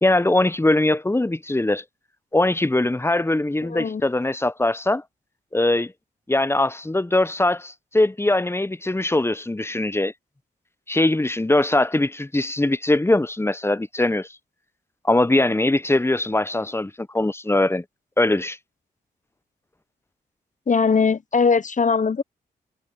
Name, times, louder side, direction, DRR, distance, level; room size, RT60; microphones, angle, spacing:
voice 1, 0.0-1.8 2.3-5.0 5.5-5.9 6.3-10.1 10.9-14.3 15.0-17.8 18.2-18.6, left 2 dB, 15° left, 0.8 m, -21 dB
voice 2, 3.6-4.0 20.7-22.2, left 5 dB, 40° left, 1.0 m, -20 dB
supercardioid pair, 40°, 19 cm